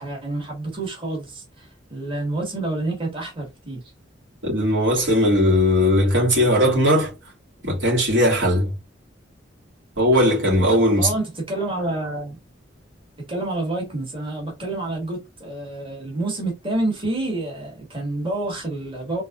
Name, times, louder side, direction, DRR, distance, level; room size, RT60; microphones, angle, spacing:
voice 1, 0.0-3.8 11.0-12.4 13.3-19.2, right 2 dB, 30° right, 1.8 m, -28 dB
voice 2, 4.4-7.1 7.6-8.7 10.0-11.1, equal, 85° right, 2.7 m, -18 dB
3.9 x 3.7 x 2.5 m
head